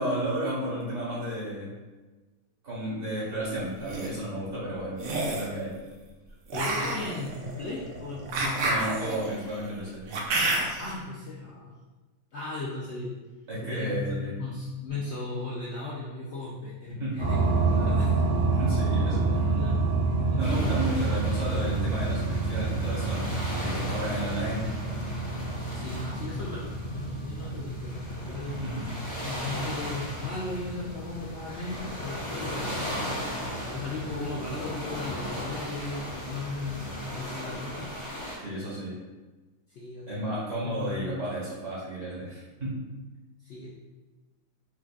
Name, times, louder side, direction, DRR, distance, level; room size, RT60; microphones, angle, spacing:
voice 1, 0.0-1.7 2.6-5.7 8.6-10.1 13.5-14.5 17.0-17.3 18.6-19.6 20.3-23.2 23.5-24.6 28.6-28.8 38.4-38.9 40.1-42.9, right 1 dB, 50° right, -8 dB, 1.5 m, -32 dB
sound 1, 3.6-4.1 5.0-5.5 6.5-10.9, right 2 dB, 70° right, 1.0 m, -29 dB
voice 2, 6.3-8.7 10.8-11.8 12.3-13.1 13.6-14.1 14.4-17.4 17.7-18.4 19.3-20.8 25.7-28.7 29.2-37.9 39.7-40.1 40.6-41.1 43.4-43.7, left 3 dB, 65° left, -5 dB, 0.7 m, -37 dB
sound 2, 17.2-37.0, right 3 dB, 85° right, 1.5 m, -30 dB
sound 3, 20.4-38.4, left 1 dB, 25° left, 0.8 m, -38 dB
4.5 x 2.4 x 2.3 m, 1.2 s
omnidirectional pair, 1.6 m